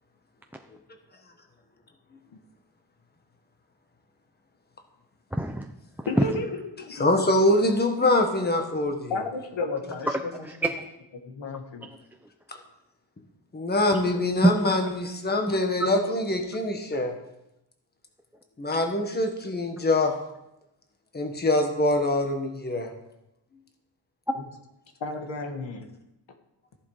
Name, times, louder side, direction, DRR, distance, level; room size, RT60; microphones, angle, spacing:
voice 1, 5.3-5.7 6.0-6.2 10.1-10.9 14.4-14.9 15.5-16.0 24.3-24.4, right 1 dB, 5° right, 3 dB, 0.6 m, -26 dB
voice 2, 6.1-6.5 6.8-6.9 9.1-10.1 11.3-11.9 25.0-25.9, left 3 dB, 85° left, 4 dB, 2.1 m, -32 dB
voice 3, 6.9-9.2 12.5-12.6 13.5-17.1 18.6-20.1 21.1-22.9, left 1 dB, 20° left, 4 dB, 1.5 m, -24 dB
14.5 x 11.0 x 5.0 m, 0.87 s
wide cardioid pair, 160°, 44 cm